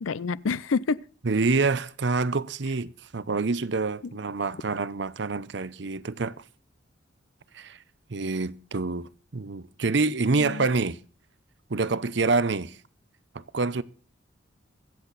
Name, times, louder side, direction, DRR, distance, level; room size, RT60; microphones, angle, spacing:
voice 1, 0.0-1.0 4.0-4.1 10.4-10.7, left 4 dB, 85° left, 0.5 m, -28 dB
voice 2, 1.2-6.4 7.5-7.8 8.1-11.0 11.7-12.8 13.3-13.8, right 3 dB, 60° right, 0.7 m, -27 dB
23.0 x 8.0 x 4.0 m
head